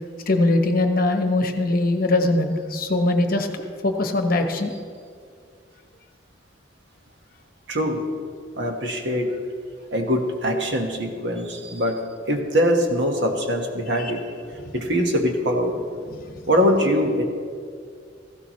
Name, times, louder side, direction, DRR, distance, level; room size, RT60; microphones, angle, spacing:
voice 1, 0.3-4.7 14.0-14.1 16.1-16.2, left 2 dB, 50° left, 5 dB, 1.1 m, -21 dB
voice 2, 7.7-8.0 8.5-9.4 9.9-14.3 14.7-15.9 16.5-17.2, equal, 65° right, 2 dB, 1.5 m, -23 dB
17.0 x 15.0 x 3.2 m, 2.1 s
head